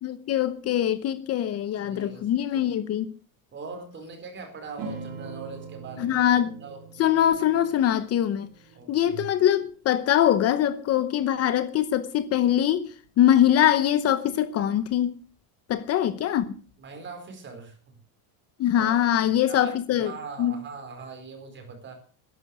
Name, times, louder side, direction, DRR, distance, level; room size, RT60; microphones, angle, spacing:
voice 1, 0.0-3.1 6.0-6.6 7.0-8.5 8.9-15.1 15.7-16.6 18.6-20.1 20.4-20.5, left 11 dB, 35° left, 0.9 m, -23 dB
voice 2, 1.8-2.8 3.5-6.2 6.6-6.8 8.7-9.3 16.8-17.8 18.7-19.0 19.5-19.7 20.0-21.9, right 4 dB, 25° right, 4.5 m, -41 dB
sound 1, 4.8-9.7, right 5 dB, 45° right, 2.5 m, -42 dB
14.0 x 11.0 x 6.2 m
cardioid pair, 165°, 45 cm